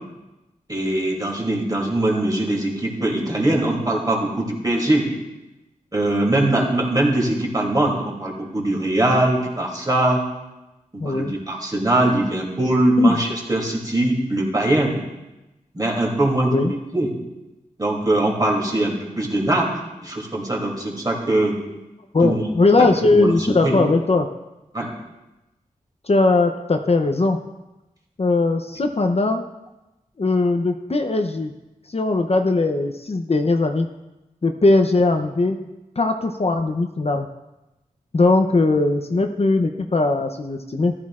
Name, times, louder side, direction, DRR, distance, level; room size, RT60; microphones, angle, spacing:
voice 1, 0.7-5.1 5.9-10.2 10.9-14.9 15.7-16.6 16.9-17.1 17.8-19.7 20.0-21.5 22.2-22.4 22.8-23.7 24.7-24.9, right 1 dB, 25° right, -1 dB, 2.8 m, -21 dB
voice 2, 11.0-11.3 13.0-13.2 16.5-16.7 22.1-24.3 26.0-27.4 28.2-29.4 30.2-31.5 31.9-33.9 34.4-35.6 36.0-37.3 38.1-40.9, left 3 dB, 45° left, 5 dB, 0.7 m, -19 dB
14.5 x 11.5 x 2.5 m, 1.0 s
wide cardioid pair, 75°, 15 cm